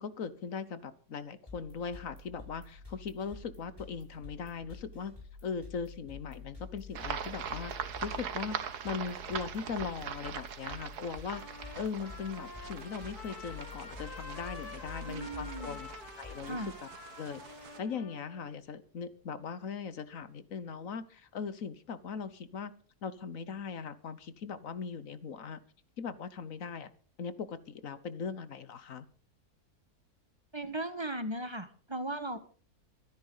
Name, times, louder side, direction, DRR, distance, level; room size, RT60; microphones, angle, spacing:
voice 1, 0.0-5.1 5.4-7.7 8.0-8.6 8.8-11.4 11.7-15.9 16.2-16.9 17.2-22.7 23.0-25.6 26.0-26.9 27.2-29.1, left 6 dB, 60° left, 15 dB, 1.4 m, -39 dB
sound 1, 1.5-16.7, left 4 dB, 15° left, 6.5 m, -49 dB
sound 2, 6.9-17.8, right 7 dB, 80° right, 1.7 m, -42 dB
Trumpet, 11.3-18.4, left 3 dB, 75° left, 2.7 m, -48 dB
voice 2, 15.1-15.8 16.5-16.7 30.5-32.4, right 1 dB, 20° right, 10 dB, 1.4 m, -37 dB
24.0 x 10.5 x 3.9 m, 0.41 s
omnidirectional pair, 1.7 m